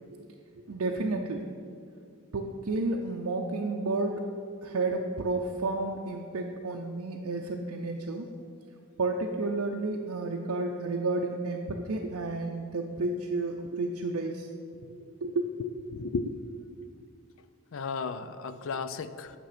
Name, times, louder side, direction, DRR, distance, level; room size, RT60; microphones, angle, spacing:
voice 1, 0.7-1.6 2.3-4.3 4.6-8.3 9.0-14.5 14.9-15.5, right 2 dB, 80° right, 1 dB, 0.5 m, -31 dB
voice 2, 15.6-16.4 17.7-19.3, left 4 dB, 60° left, 12 dB, 0.4 m, -34 dB
9.2 x 6.0 x 5.0 m, 2.3 s
head